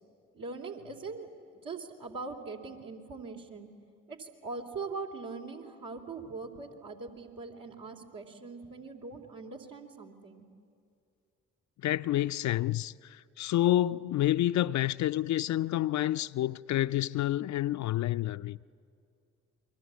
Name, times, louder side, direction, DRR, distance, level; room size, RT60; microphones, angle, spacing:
voice 1, 0.3-1.3 1.6-3.7 4.1-10.4, right 4 dB, 65° right, 3.2 m, -41 dB
voice 2, 11.8-18.6, left 14 dB, 50° left, 0.6 m, -29 dB
28.5 x 23.0 x 8.3 m
hypercardioid pair, 40°, 36 cm